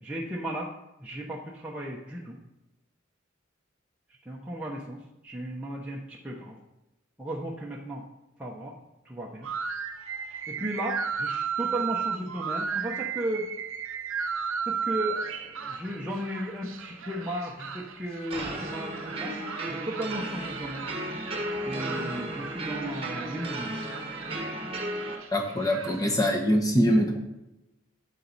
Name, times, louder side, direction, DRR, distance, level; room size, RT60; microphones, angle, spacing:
voice 1, 0.0-0.7 1.0-2.4 4.2-6.6 7.2-8.0 8.4-8.8 9.0-9.5 10.5-13.5 14.7-19.3 19.7-20.9 21.6-23.8, right 1 dB, 5° right, -4 dB, 0.9 m, -35 dB
sound 1, 9.4-26.4, right 6 dB, 80° right, 0.7 m, -35 dB
sound 2, 18.3-25.2, right 1 dB, 30° right, 1.2 m, -34 dB
voice 2, 25.3-27.2, equal, 20° left, 2 dB, 1.1 m, -23 dB
8.4 x 7.5 x 4.1 m, 0.93 s
head